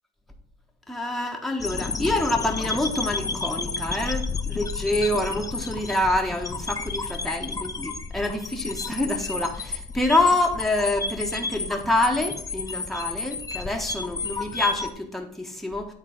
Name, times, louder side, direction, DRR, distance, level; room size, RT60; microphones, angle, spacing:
voice 1, 0.9-15.9, left 2 dB, ahead, 1 dB, 1.2 m, -26 dB
sound 1, 1.6-14.9, left 4 dB, 20° left, 0.7 m, -31 dB
8.4 x 3.8 x 5.2 m, 0.66 s
cardioid pair, 110°, 17 cm